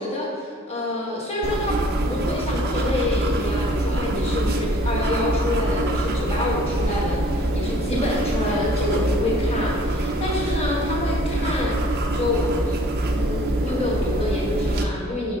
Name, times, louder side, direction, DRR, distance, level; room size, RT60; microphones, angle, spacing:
voice 1, 0.0-1.8 2.0-11.8 12.1-12.8 13.1-15.4, left 2 dB, 30° left, -3 dB, 1.2 m, -27 dB
sound 1, 1.4-14.8, right 1 dB, 45° right, 0.5 m, -24 dB
5.9 x 4.1 x 5.3 m, 2.1 s
head